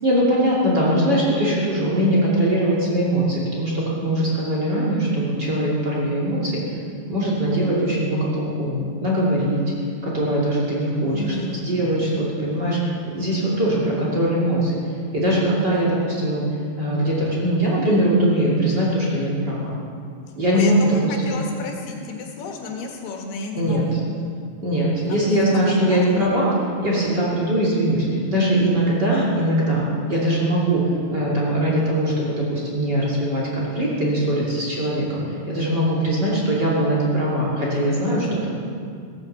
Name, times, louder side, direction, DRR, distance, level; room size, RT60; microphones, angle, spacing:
voice 1, 0.0-6.6 7.1-9.6 10.0-12.8 13.0-14.8 15.1-16.4 16.8-19.7 20.4-21.1 23.6-23.8 24.6-26.5 26.8-29.8 30.1-30.8 31.1-35.2 35.5-38.5, right 1 dB, 30° right, -5 dB, 3.0 m, -21 dB
voice 2, 11.1-11.6 20.5-24.0 25.1-25.5 25.8-26.3, left 4 dB, 85° left, 1 dB, 3.6 m, -32 dB
15.5 x 10.0 x 7.6 m, 2.3 s
omnidirectional pair, 4.5 m